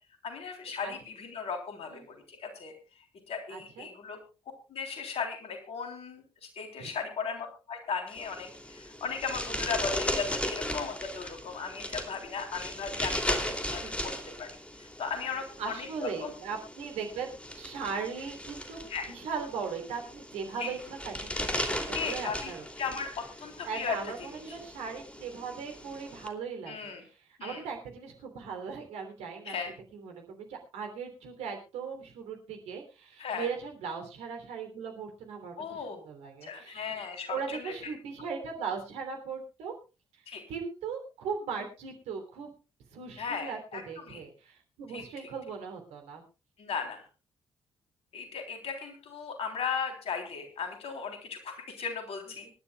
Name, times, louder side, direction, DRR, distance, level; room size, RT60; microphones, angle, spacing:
voice 1, 0.2-2.7 3.3-4.2 4.7-14.1 14.4-14.5 14.8-16.3 18.9-19.1 20.6-20.7 21.9-22.5 22.8-24.6 26.7-27.0 27.4-27.6 29.4-29.7 33.2-33.5 35.6-36.0 36.4-37.7 40.3-40.4 43.2-44.2 44.9-45.0 46.6-47.0 48.1-52.5, left 5 dB, 60° left, 4 dB, 3.5 m, -36 dB
voice 2, 3.5-3.9 6.8-6.9 13.7-13.9 15.6-22.6 23.6-29.5 29.9-36.9 37.3-39.7 40.5-42.5 42.9-46.2, right 6 dB, 65° right, 3 dB, 3.2 m, -38 dB
sound 1, 8.1-26.3, left 1 dB, 10° left, 2.8 m, -37 dB
25.0 x 11.5 x 2.3 m, 0.32 s
figure-of-eight pair, 40°, 12 cm